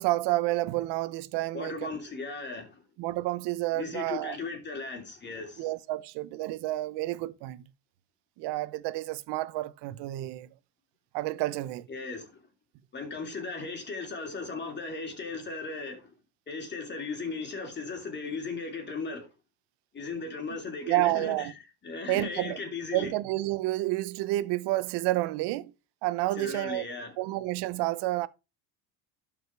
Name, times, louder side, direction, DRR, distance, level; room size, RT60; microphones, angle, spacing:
voice 1, 0.0-2.0 3.0-4.4 5.6-7.6 8.4-10.5 11.1-11.9 20.9-21.5 22.1-22.6 22.9-25.7 26.0-26.8 27.2-28.3, right 17 dB, 65° right, 0.9 m, -30 dB
voice 2, 1.5-2.8 3.7-5.7 11.9-12.4 12.9-16.1 16.5-19.3 19.9-21.5 21.8-23.1 26.3-27.1, left 4 dB, 25° left, 3.0 m, -37 dB
12.0 x 5.1 x 4.6 m
cardioid pair, 150°, 44 cm